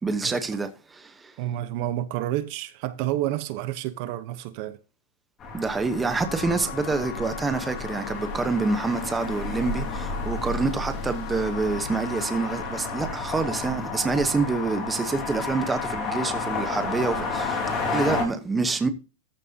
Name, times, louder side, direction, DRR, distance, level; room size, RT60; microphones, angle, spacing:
voice 1, 0.0-1.3 5.5-17.6 17.9-18.9, right 4 dB, 10° right, 1.0 m, -27 dB
voice 2, 1.4-4.8, right 13 dB, 40° right, 0.9 m, -29 dB
sound 1, 5.4-18.2, left 3 dB, 20° left, 4.3 m, -31 dB
sound 2, 6.0-13.0, left 12 dB, 70° left, 1.5 m, -40 dB
14.5 x 8.9 x 2.8 m
supercardioid pair, 175°, 0 cm